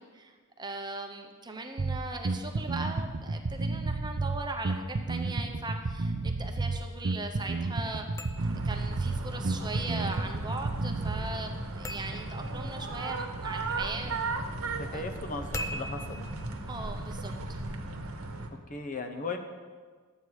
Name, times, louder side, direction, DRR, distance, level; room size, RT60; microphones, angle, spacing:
voice 1, 0.0-8.0 8.6-14.1 14.8-15.1 16.7-17.6, right 3 dB, 20° right, 4 dB, 0.8 m, -39 dB
Bass guitar, 1.8-11.4, right 3 dB, 50° right, 0.6 m, -32 dB
sound 1, 8.0-17.8, equal, 15° left, 0.5 m, -45 dB
sound 2, 8.4-18.5, right 2 dB, 75° right, 1.1 m, -36 dB
voice 2, 14.8-16.2 18.7-19.4, left 3 dB, 35° left, 6 dB, 0.9 m, -37 dB
11.5 x 8.4 x 4.9 m, 1.5 s
head